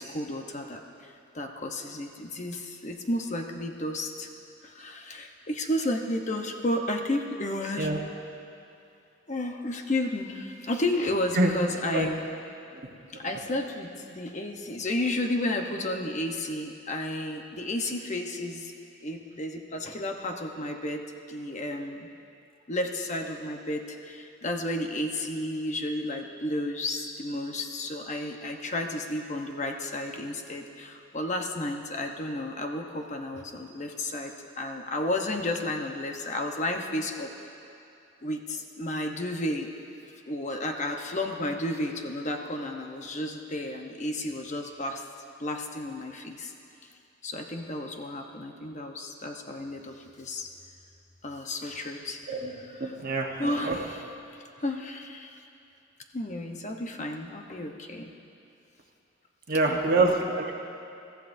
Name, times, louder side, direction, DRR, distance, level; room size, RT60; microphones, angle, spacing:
voice 1, 0.0-4.3 4.6-8.1 9.3-12.2 13.1-18.7 19.0-22.1 22.7-37.3 38.2-39.7 40.3-45.0 45.4-46.5 47.2-50.5 51.2-53.0 53.4-54.1 54.6-55.4 56.1-58.1 59.7-60.4, left 1 dB, 40° left, 3 dB, 0.9 m, -32 dB
voice 2, 52.8-53.8 59.5-60.5, right 2 dB, 50° right, 1 dB, 1.2 m, -25 dB
22.5 x 14.0 x 2.7 m, 2.7 s
head